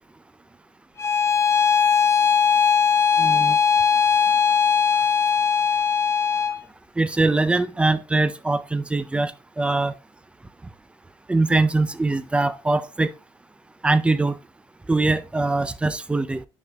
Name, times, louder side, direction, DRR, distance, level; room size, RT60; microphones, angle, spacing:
Bowed string instrument, 1.0-6.6, left 7 dB, 20° left, 0.8 m, -19 dB
voice 1, 3.2-3.6 7.0-9.9 11.3-13.1 13.8-14.4 14.9-16.4, right 2 dB, 10° right, 0.4 m, -22 dB
9.4 x 5.3 x 2.2 m
supercardioid pair, 95°, 12 cm